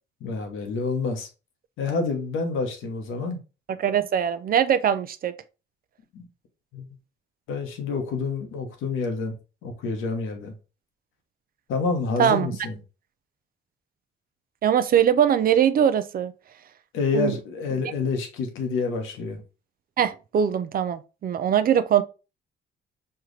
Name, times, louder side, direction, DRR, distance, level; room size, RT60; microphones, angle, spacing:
voice 1, 0.2-1.3 1.8-3.4 6.1-6.3 6.7-7.0 7.5-10.5 11.7-12.8 16.9-19.4, left 4 dB, 85° left, 1.0 m, -28 dB
voice 2, 3.8-5.3 12.2-12.5 14.6-16.3 17.1-17.3 20.0-22.0, right 9 dB, 50° right, 0.4 m, -21 dB
4.5 x 2.4 x 3.1 m
cardioid pair, 90°, 20 cm